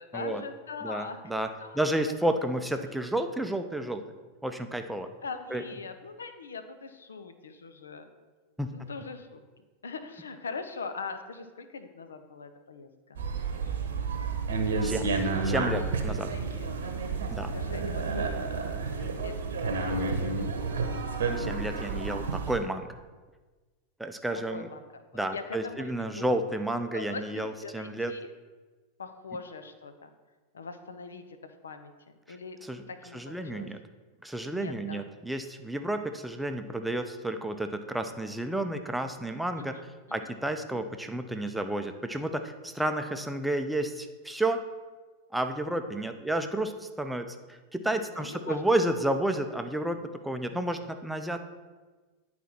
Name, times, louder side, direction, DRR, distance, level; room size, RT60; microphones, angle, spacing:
voice 1, 0.0-1.2 1.6-1.8 5.2-8.1 8.7-9.4 9.8-13.2 16.3-16.7 17.5-20.4 24.3-25.0 25.3-26.3 26.9-28.3 29.0-30.1 30.5-32.6 32.9-33.7 34.5-35.0 39.6-39.9 40.2-40.3 40.7-40.8 48.2-48.6, left 4 dB, 80° left, 9 dB, 0.6 m, -42 dB
voice 2, 0.8-1.5 1.7-4.0 4.4-5.1 5.5-5.6 8.6-8.7 14.8-15.1 15.4-16.3 17.3-17.5 21.4-22.9 24.0-24.7 25.1-28.1 32.7-32.8 33.1-33.8 34.2-39.8 40.1-44.6 45.3-51.4, right 1 dB, 5° right, 7 dB, 0.6 m, -31 dB
sound 1, 13.2-22.6, right 4 dB, 70° right, 0.9 m, -30 dB
10.0 x 4.2 x 4.3 m, 1.3 s
figure-of-eight pair, 90°, 0 cm